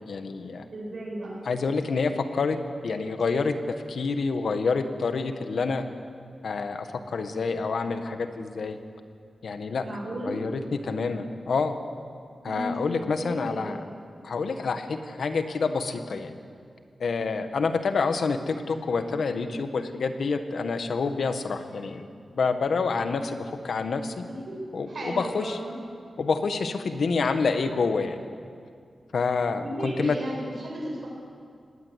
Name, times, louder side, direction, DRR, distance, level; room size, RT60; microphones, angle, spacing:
voice 1, 0.1-0.6 1.4-2.6 2.8-3.5 3.9-5.8 6.4-8.8 9.4-9.8 10.2-11.7 12.4-13.8 14.2-16.3 17.0-22.1 22.3-24.2 24.7-25.6 26.2-28.2 29.1-30.2, left 4 dB, 70° left, 7 dB, 1.7 m, -27 dB
voice 2, 0.7-1.4 9.8-10.4 12.4-13.7 24.3-24.5 24.9-25.7 29.6-31.1, right 1 dB, 45° right, -4 dB, 7.8 m, -35 dB
26.5 x 20.0 x 8.3 m, 2.2 s
wide cardioid pair, 180°, 0 cm